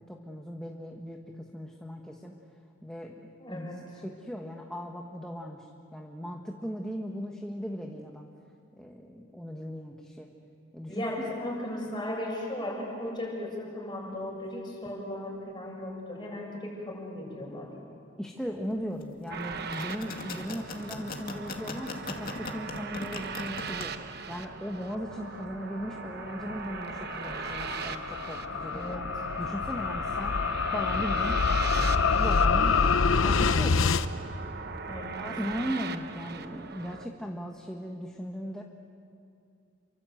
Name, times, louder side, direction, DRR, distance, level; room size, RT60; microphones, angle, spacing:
voice 1, 0.0-2.4 2.8-8.3 8.8-10.3 10.7-11.3 18.2-24.0 24.3-29.1 29.4-30.4 30.7-31.4 31.7-32.8 33.2-34.0 35.1-38.6, equal, 5° left, 0 dB, 1.4 m, -38 dB
voice 2, 3.4-3.8 10.9-17.7 28.2-28.3 28.7-29.1 34.9-35.3, left 1 dB, 25° left, -2 dB, 7.1 m, -36 dB
sound 1, 19.3-37.1, right 5 dB, 55° right, 1.1 m, -40 dB
sound 2, 19.6-23.8, left 3 dB, 45° left, 2.4 m, -39 dB
sound 3, 26.2-34.0, left 5 dB, 90° left, 0.9 m, -26 dB
29.0 x 24.5 x 7.9 m, 2.5 s
head